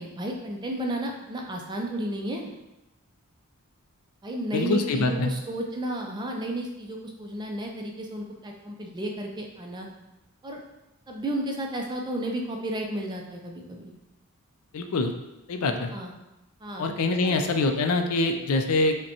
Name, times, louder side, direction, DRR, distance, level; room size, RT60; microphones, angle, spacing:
voice 1, 0.0-2.5 4.2-9.9 10.4-10.6 11.1-13.9 15.9-16.1 16.6-16.9 17.2-17.4, right 1 dB, 20° right, 1 dB, 0.4 m, -32 dB
voice 2, 4.5-5.3 14.7-15.1 15.5-15.9 16.8-19.0, left 2 dB, 75° left, 6 dB, 0.4 m, -24 dB
5.2 x 2.2 x 2.8 m, 0.97 s
head